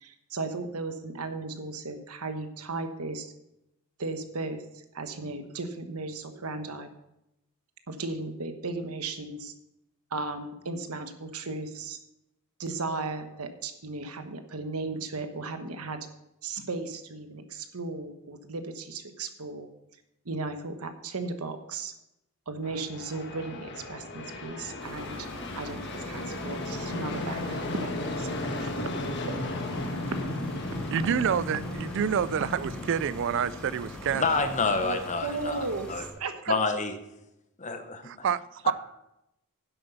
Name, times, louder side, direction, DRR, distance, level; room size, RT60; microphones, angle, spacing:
voice 1, 0.0-3.3 4.0-6.9 7.9-9.5 10.1-12.0 12.6-16.1 16.4-19.7 20.2-21.9 22.5-25.3 25.5-28.9 29.3-29.5 30.9-31.0 34.8-36.4, right 3 dB, 85° right, 8 dB, 1.2 m, -36 dB
sound 1, 22.6-35.5, left 2 dB, 55° left, 1.4 m, -36 dB
sound 2, 24.8-36.1, equal, 5° left, 2.4 m, -43 dB
voice 2, 30.9-34.5 38.0-38.7, right 7 dB, 60° right, 17 dB, 0.4 m, -28 dB
voice 3, 34.1-36.0 36.5-37.0 37.6-38.1 38.6-38.7, left 4 dB, 35° left, 8 dB, 1.0 m, -28 dB
10.5 x 7.9 x 5.6 m, 0.87 s
head